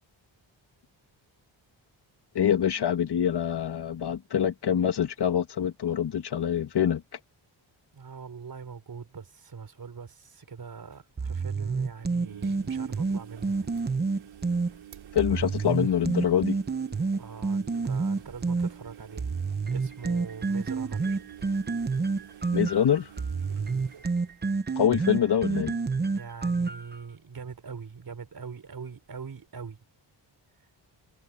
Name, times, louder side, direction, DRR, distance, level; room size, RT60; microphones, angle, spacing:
voice 1, 2.3-7.0 15.1-16.6 22.5-23.1 24.7-25.8, left 9 dB, 55° left, 1.7 m, -25 dB
voice 2, 7.9-13.7 17.2-19.4 19.7-21.2 23.5-23.9 26.1-29.8, right 6 dB, 45° right, 5.0 m, -42 dB
sound 1, 10.7-10.8 10.9-11.0 12.0-25.0 25.4-25.8 26.1-26.2 28.0-28.1, right 10 dB, 85° right, 3.3 m, -49 dB
sound 2, 11.2-14.7 15.2-18.7 19.2-27.0, right 4 dB, 20° right, 0.8 m, -28 dB
wide cardioid pair, 155°, 47 cm